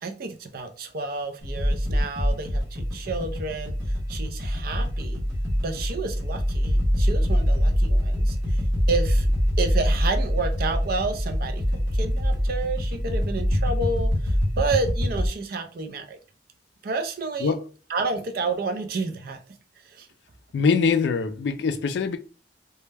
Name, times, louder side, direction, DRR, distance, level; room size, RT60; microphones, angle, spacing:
voice 1, 0.0-5.2 5.6-9.3 9.6-16.2 16.8-17.5 17.9-19.4 19.8-20.1, right 3 dB, 55° right, 0.4 m, -30 dB
Beat Night, 1.4-15.3, equal, 75° right, 0.9 m, -24 dB
voice 2, 20.5-22.2, left 5 dB, 65° left, 0.3 m, -23 dB
2.2 x 2.0 x 3.2 m
head